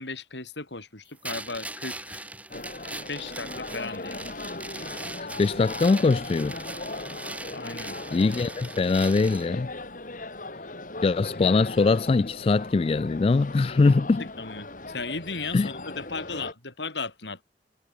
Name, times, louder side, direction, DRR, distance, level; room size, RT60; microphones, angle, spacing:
voice 1, 0.0-2.3 2.5-4.3 7.5-8.0 14.4-17.4, left 4 dB, 80° left, 4.9 m, -36 dB
sound 1, 1.2-9.5, right 2 dB, 10° right, 3.3 m, -40 dB
sound 2, 2.5-16.5, left 2 dB, 50° left, 4.5 m, -38 dB
voice 2, 5.4-6.5 8.1-9.7 11.0-14.2 15.5-15.7, left 3 dB, 35° left, 0.3 m, -22 dB
head